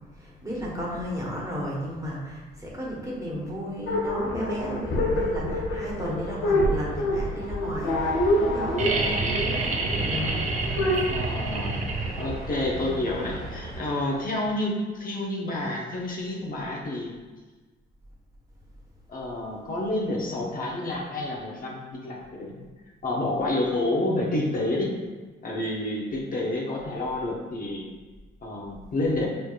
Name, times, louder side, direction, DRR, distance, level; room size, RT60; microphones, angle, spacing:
voice 1, 0.1-10.7 12.7-12.9, equal, 15° right, -4 dB, 1.1 m, -34 dB
sound 1, 3.9-11.1, left 1 dB, 85° left, 0.7 m, -27 dB
sound 2, 7.9-13.8, right 2 dB, 20° left, 1.3 m, -36 dB
sound 3, 8.8-12.5 14.3-14.4, right 3 dB, 40° right, 0.5 m, -28 dB
voice 2, 11.0-11.8 12.2-17.1 19.1-22.6 23.0-24.9 25.4-27.9 28.4-29.3, left 1 dB, 45° left, -2 dB, 0.7 m, -29 dB
4.6 x 3.2 x 2.3 m, 1.3 s
cardioid pair, 90°, 20 cm